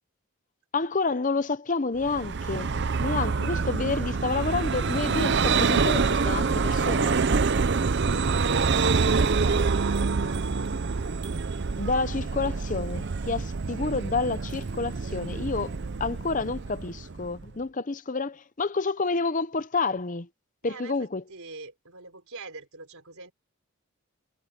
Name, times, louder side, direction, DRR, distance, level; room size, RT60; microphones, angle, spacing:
voice 1, 0.7-2.7 3.0-7.2 11.8-15.7 16.0-20.3 20.6-21.2, left 3 dB, 35° left, 0.7 m, -29 dB
Vehicle, 2.0-17.5, right 4 dB, 50° right, 0.6 m, -26 dB
voice 2, 7.7-10.4 20.6-21.0 21.3-23.3, right 3 dB, 75° right, 4.0 m, -45 dB
head